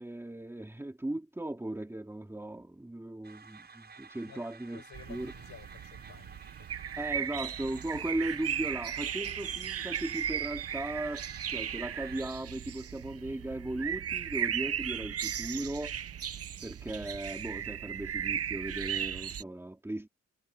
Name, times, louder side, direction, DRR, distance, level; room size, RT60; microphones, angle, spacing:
voice 1, 0.0-4.8 5.1-5.3 7.0-15.9 16.6-20.1, right 1 dB, 10° right, 2.5 m, -37 dB
sound 1, 3.2-12.2, right 5 dB, 35° right, 7.0 m, -53 dB
voice 2, 4.7-6.8, left 8 dB, 65° left, 7.2 m, -53 dB
sound 2, 4.9-19.4, right 9 dB, 50° right, 0.8 m, -36 dB
wide cardioid pair, 160°, 30 cm